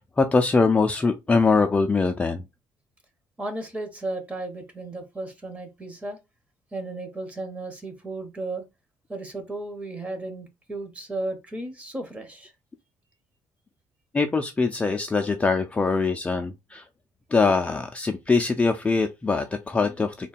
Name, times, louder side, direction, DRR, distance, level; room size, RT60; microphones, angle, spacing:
voice 1, 0.0-2.4 14.1-16.8 17.3-20.3, left 4 dB, 15° left, 0.3 m, -23 dB
voice 2, 3.4-6.2 6.7-8.6 9.1-12.5, right 2 dB, 15° right, 0.9 m, -34 dB
3.6 x 2.2 x 4.1 m
cardioid pair, 145°, 8 cm